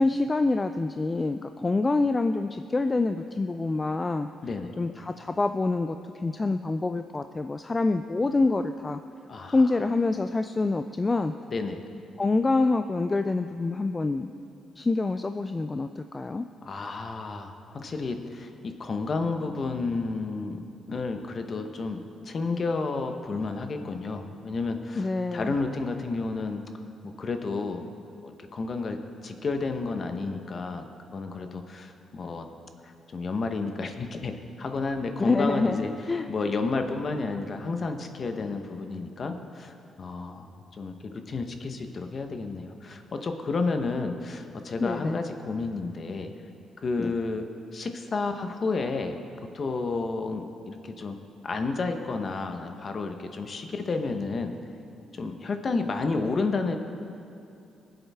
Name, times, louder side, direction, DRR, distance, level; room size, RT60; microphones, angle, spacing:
voice 1, 0.0-4.3 4.8-9.0 9.5-11.3 12.2-14.3 14.8-16.5 25.0-25.5 35.2-36.3 44.8-45.2 47.0-47.1, left 3 dB, 25° left, 8 dB, 0.3 m, -26 dB
voice 2, 4.4-4.7 9.3-9.6 11.5-11.8 16.6-26.6 27.2-27.9 28.2-29.0 29.2-30.9 31.1-32.5 32.8-35.9 36.3-46.3 46.8-47.5 47.7-49.1 49.5-51.2 51.4-54.5 55.1-56.8, left 3 dB, 45° left, 6 dB, 1.0 m, -31 dB
20.5 x 7.9 x 3.5 m, 2.7 s
cardioid pair, 90°, 0 cm